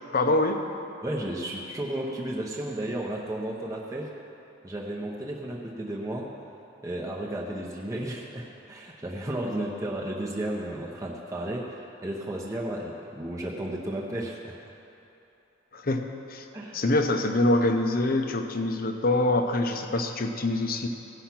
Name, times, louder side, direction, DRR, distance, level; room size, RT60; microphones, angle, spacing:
voice 1, 0.1-0.6 15.7-16.5 16.7-20.9, left 2 dB, 50° left, 5 dB, 0.8 m, -25 dB
voice 2, 1.0-4.1 4.6-6.3 6.8-14.6 16.5-16.8, right 1 dB, 15° right, -3 dB, 0.8 m, -33 dB
16.5 x 5.7 x 5.9 m, 2.8 s
head